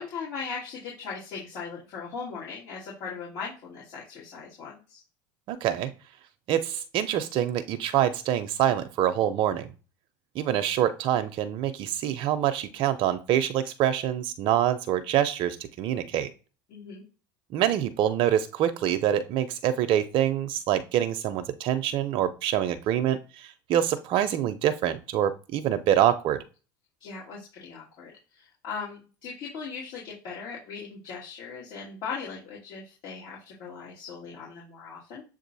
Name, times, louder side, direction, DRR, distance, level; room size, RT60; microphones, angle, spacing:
voice 1, 0.0-5.0 16.7-17.0 27.0-35.2, left 5 dB, 55° left, -7 dB, 2.1 m, -39 dB
voice 2, 5.5-5.9 6.5-9.7 10.4-16.3 17.5-26.4, right 11 dB, 55° right, 11 dB, 0.5 m, -25 dB
6.9 x 2.4 x 2.7 m, 0.34 s
hypercardioid pair, 90°, 10 cm